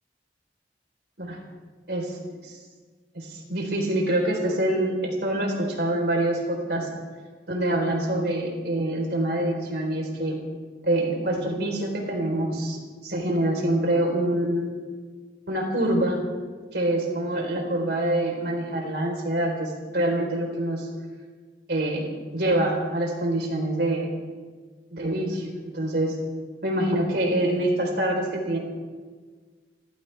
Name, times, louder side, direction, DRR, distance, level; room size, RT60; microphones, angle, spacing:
voice 1, 1.9-2.2 2.4-2.6 3.1-6.9 7.5-10.4 10.8-14.8 15.5-16.2 16.7-20.9 21.7-24.1 24.9-26.2 26.6-28.6, right 1 dB, 65° right, 1 dB, 4.0 m, -25 dB
29.5 x 14.5 x 3.4 m, 1.5 s
head